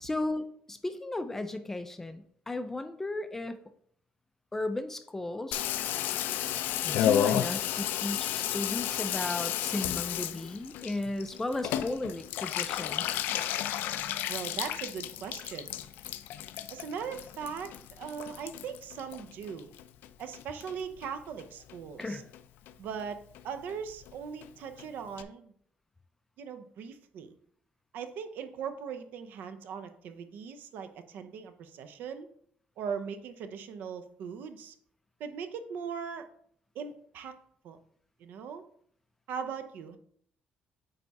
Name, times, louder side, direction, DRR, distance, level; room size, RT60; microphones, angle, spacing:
voice 1, 0.0-3.6 4.5-5.6 6.8-13.2 22.0-22.2, left 2 dB, 10° left, 9 dB, 0.4 m, -35 dB
Water tap faucet / Bathtub (filling or washing), 5.5-20.1 20.3-21.1 21.4-21.5 21.7-21.8 22.0-22.4 22.7-22.8 23.0-23.1 23.4-23.5 23.7-23.8 24.0-24.1 24.4-24.5 24.8-24.9 25.2-25.3, left 11 dB, 80° left, 0.4 m, -33 dB
voice 2, 14.3-15.8 16.7-19.7 20.2-22.2 22.8-25.5 26.4-27.3 27.9-32.3 32.8-34.7 35.2-36.3 36.7-37.3 37.6-37.8 38.2-38.6 39.3-40.0, right 6 dB, 65° right, 9 dB, 0.7 m, -39 dB
8.9 x 3.6 x 4.1 m, 0.64 s
cardioid pair, 170°, 3 cm